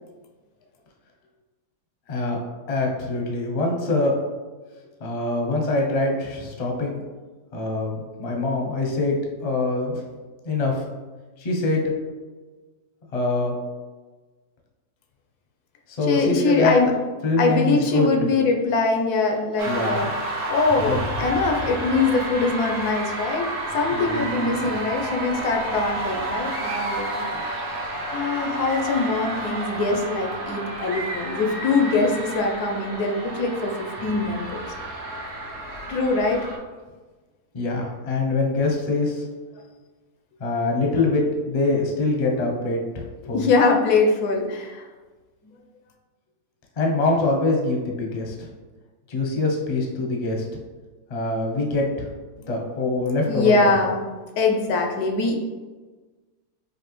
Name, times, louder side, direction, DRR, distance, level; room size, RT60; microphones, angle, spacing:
voice 1, 2.1-2.4 2.7-4.2 5.0-7.0 7.5-9.2 9.4-10.0 10.4-10.8 11.4-11.9 13.1-13.5 15.9-16.7 17.2-18.1 19.6-20.1 20.8-21.0 23.9-24.7 37.5-39.2 40.4-43.5 46.8-48.5 49.1-50.4 51.1-52.1 52.5-53.7, left 2 dB, 40° left, 0 dB, 0.5 m, -24 dB
voice 2, 16.1-16.9 17.4-20.1 20.5-27.8 28.1-33.7 34.0-34.7 35.9-36.5 43.3-44.9 45.4-45.5 52.4-52.5 53.3-54.0 54.4-55.4, left 3 dB, 90° left, 2 dB, 1.2 m, -23 dB
sound 1, 19.6-36.6, right 1 dB, 60° right, 1.1 m, -30 dB
5.1 x 2.6 x 3.0 m, 1.3 s
omnidirectional pair, 1.6 m